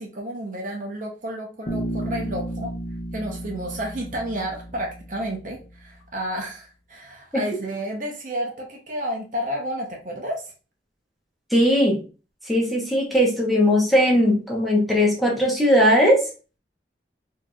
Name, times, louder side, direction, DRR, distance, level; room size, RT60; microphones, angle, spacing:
voice 1, 0.0-2.7 3.1-10.5, equal, 45° right, 1 dB, 0.8 m, -31 dB
Bass guitar, 1.7-5.7, right 1 dB, 30° left, 0.7 m, -33 dB
voice 2, 11.5-12.0 12.5-16.2, equal, ahead, -4 dB, 1.0 m, -19 dB
4.5 x 2.8 x 2.4 m, 0.35 s
head